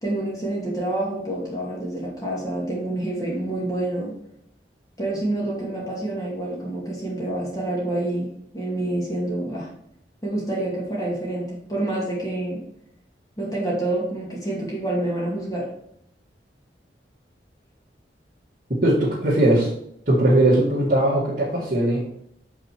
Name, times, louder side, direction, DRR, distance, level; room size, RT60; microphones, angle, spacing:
voice 1, 0.0-4.1 5.0-9.7 10.2-12.6 13.4-15.7, right 1 dB, 20° left, -5 dB, 2.2 m, -27 dB
voice 2, 18.8-19.7 20.1-22.1, right 1 dB, 45° right, -8 dB, 2.2 m, -19 dB
7.3 x 5.7 x 4.5 m, 0.71 s
head